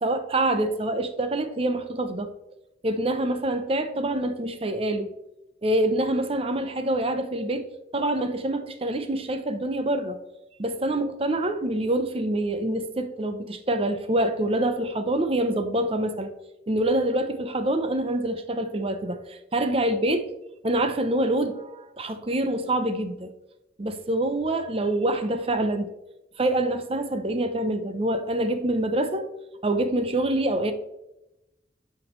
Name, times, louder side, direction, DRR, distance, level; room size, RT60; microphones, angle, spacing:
voice 1, 0.0-2.3 2.8-5.1 5.6-7.7 7.9-10.2 10.6-16.3 16.7-20.3 20.6-23.3 23.8-25.9 26.4-29.3 29.6-30.7, right 1 dB, 30° right, 8 dB, 0.6 m, -26 dB
11.0 x 5.2 x 3.1 m, 0.91 s
head